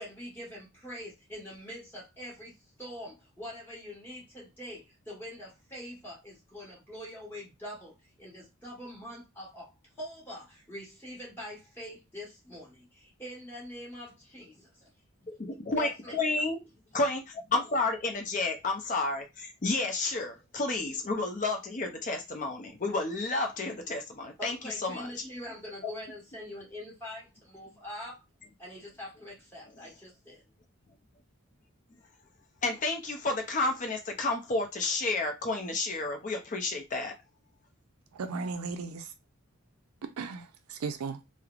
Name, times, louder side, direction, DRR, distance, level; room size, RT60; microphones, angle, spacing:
voice 1, 0.0-14.9 15.8-16.2 24.4-28.2 28.6-30.4, equal, 10° left, 1.2 m, -44 dB
voice 2, 15.2-16.6 16.9-25.1 25.8-25.9 32.6-37.2, left 3 dB, 35° left, 0.5 m, -31 dB
voice 3, 38.1-39.1 40.0-41.2, right 4 dB, 80° right, 0.4 m, -36 dB
2.9 x 2.0 x 2.4 m
head